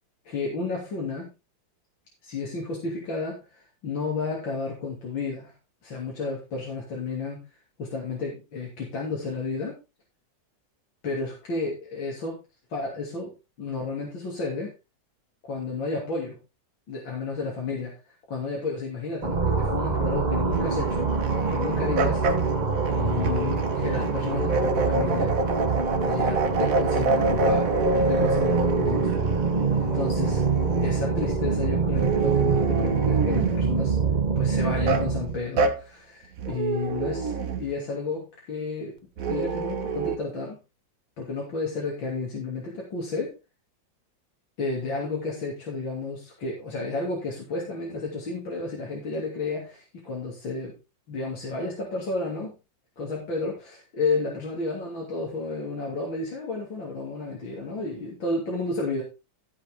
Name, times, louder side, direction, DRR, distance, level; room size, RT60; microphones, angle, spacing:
voice 1, 0.3-1.3 2.2-5.5 5.8-7.4 7.8-9.7 11.0-12.4 12.7-13.3 13.6-14.7 15.4-16.4 16.9-22.5 22.9-25.4 26.0-29.2 29.8-30.4 30.8-34.0 34.4-39.0 39.3-40.6 41.2-43.4 44.6-50.8 51.1-52.6 53.0-59.0, left 3 dB, 85° left, -3 dB, 3.7 m, -32 dB
sound 1, 19.2-35.4, right 4 dB, 25° right, 1.2 m, -25 dB
sound 2, 20.5-31.0 31.9-33.6 34.9-35.1 35.6-35.8 36.4-37.7 39.2-40.2, right 4 dB, 50° right, 1.5 m, -27 dB
13.0 x 8.3 x 3.7 m, 0.27 s
omnidirectional pair, 2.0 m